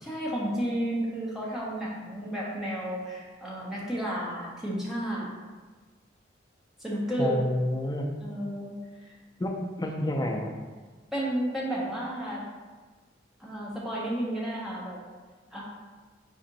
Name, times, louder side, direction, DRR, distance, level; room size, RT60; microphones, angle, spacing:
voice 1, 0.0-5.3 6.8-7.4 8.2-8.8 11.1-12.4 13.4-15.0 15.5-15.6, right 1 dB, ahead, -6 dB, 0.8 m, -32 dB
voice 2, 7.2-8.1 9.4-10.5 12.3-12.4, left 1 dB, 20° left, 2 dB, 0.4 m, -29 dB
4.2 x 2.6 x 4.0 m, 1.4 s
head